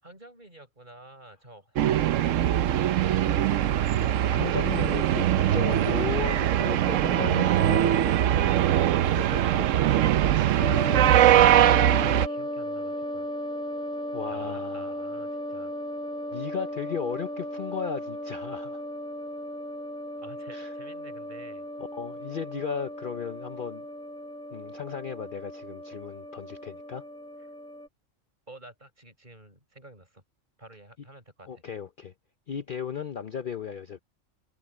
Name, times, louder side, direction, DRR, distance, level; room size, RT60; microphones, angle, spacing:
voice 1, 0.0-4.0 10.3-13.3 14.3-15.7 20.2-21.7 27.4-27.5 28.5-30.2 30.6-31.6, right 2 dB, 40° right, 6.1 m, -50 dB
sound 1, 1.8-12.3, right 11 dB, 80° right, 1.0 m, -22 dB
voice 2, 4.0-8.7 9.1-10.0 14.1-14.9 16.3-18.8 20.5-20.7 21.9-23.9 24.5-27.1 31.5-32.1 32.5-34.0, left 7 dB, 50° left, 0.8 m, -35 dB
sound 2, 10.6-27.9, equal, 5° left, 0.7 m, -36 dB
omnidirectional pair, 1.3 m